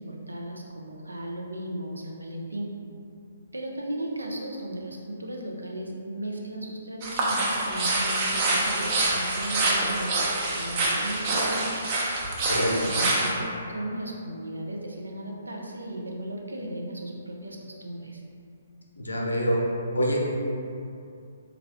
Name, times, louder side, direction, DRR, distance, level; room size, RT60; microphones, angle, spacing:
voice 1, 0.0-2.7 3.5-10.1 10.5-11.7 12.6-18.2, right 1 dB, 80° right, -1 dB, 0.5 m, -36 dB
sound 1, 7.0-13.3, right 2 dB, 35° right, 0.6 m, -26 dB
voice 2, 19.0-19.6 19.9-20.2, equal, 75° left, -2 dB, 0.6 m, -25 dB
3.5 x 2.3 x 3.4 m, 2.6 s
figure-of-eight pair, 130°, 0 cm